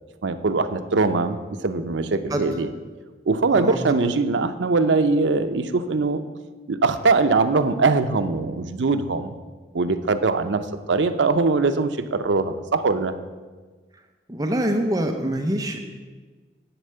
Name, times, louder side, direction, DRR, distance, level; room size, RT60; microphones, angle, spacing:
voice 1, 0.2-2.7 3.3-6.2 6.7-9.3 9.7-13.1, right 3 dB, 85° right, 10 dB, 0.6 m, -22 dB
voice 2, 14.3-15.8, right 1 dB, 20° right, 4 dB, 0.7 m, -24 dB
10.0 x 4.4 x 7.6 m, 1.4 s
head